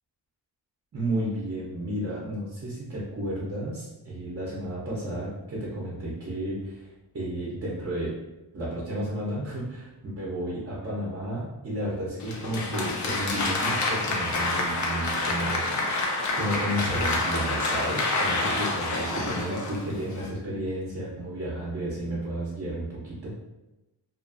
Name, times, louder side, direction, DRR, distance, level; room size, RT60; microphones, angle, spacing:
voice 1, 0.9-6.9 7.1-8.1 8.5-15.9 16.3-23.3, right 1 dB, 35° right, -7 dB, 0.6 m, -32 dB
Applause, 12.2-20.3, left 2 dB, 45° left, 0.5 m, -28 dB
2.5 x 2.4 x 2.4 m, 1.0 s
cardioid pair, 115°, 42 cm